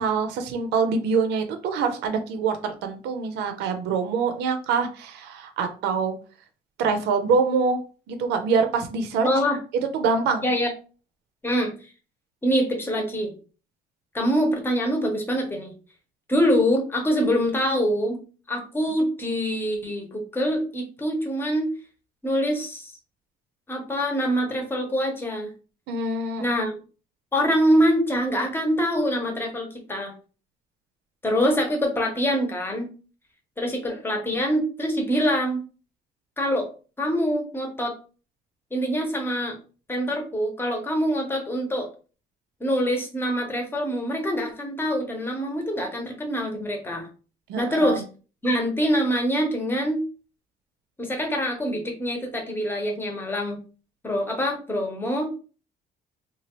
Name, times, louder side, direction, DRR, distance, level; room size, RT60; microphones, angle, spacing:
voice 1, 0.0-6.2 6.8-7.8 8.1-9.3 9.9-10.5 25.9-26.4 47.5-48.0, right 5 dB, 85° right, 7 dB, 0.6 m, -25 dB
voice 2, 9.2-9.6 10.4-10.7 11.4-11.7 12.4-13.3 14.1-15.7 16.3-18.2 18.5-21.7 22.2-22.9 23.7-25.5 26.4-26.7 27.3-30.1 31.2-32.9 33.6-35.6 36.4-36.7 37.0-38.0 38.7-39.6 39.9-41.9 42.6-47.1 47.6-48.0 48.4-50.0 51.0-53.6 54.0-55.3, equal, 15° left, 2 dB, 0.9 m, -24 dB
2.8 x 2.4 x 3.0 m, 0.36 s
cardioid pair, 110°, 17 cm